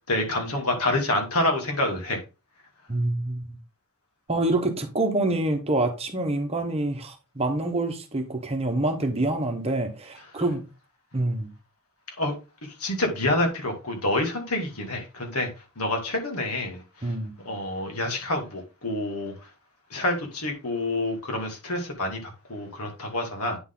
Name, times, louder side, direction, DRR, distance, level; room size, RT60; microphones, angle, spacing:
voice 1, 0.1-2.2 12.2-12.3 12.6-15.5 15.8-16.8 17.4-19.3 19.9-23.6, left 1 dB, 80° left, 2.2 m, -27 dB
voice 2, 2.9-3.6 4.3-10.6 11.1-11.5 17.0-17.3, right 2 dB, 25° right, 1.1 m, -26 dB
9.3 x 4.1 x 3.8 m
head